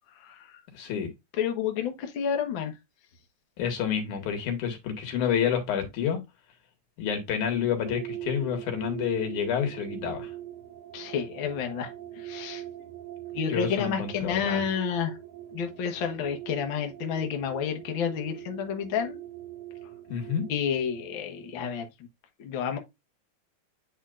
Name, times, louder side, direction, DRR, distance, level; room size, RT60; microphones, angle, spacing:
voice 1, 0.7-1.1 3.6-6.2 7.0-10.3 13.5-14.7 20.1-20.5, left 8 dB, 85° left, 3.1 m, -29 dB
voice 2, 1.4-2.7 10.9-11.9 12.2-12.6 13.3-15.2 15.5-19.2 20.5-21.9 22.4-22.8, left 7 dB, 50° left, 1.7 m, -30 dB
sound 1, 7.8-21.7, right 13 dB, 85° right, 2.2 m, -42 dB
9.1 x 4.5 x 2.5 m
omnidirectional pair, 3.4 m